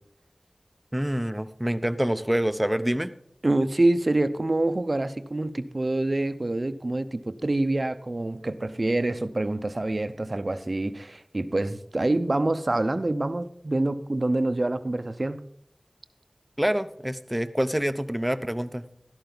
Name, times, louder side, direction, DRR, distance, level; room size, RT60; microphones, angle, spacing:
voice 1, 0.9-3.1 16.6-18.8, equal, 10° right, 11 dB, 0.8 m, -26 dB
voice 2, 3.4-15.5, right 2 dB, 55° right, 12 dB, 0.7 m, -26 dB
13.0 x 11.5 x 3.9 m, 0.73 s
wide cardioid pair, 55°, 0 cm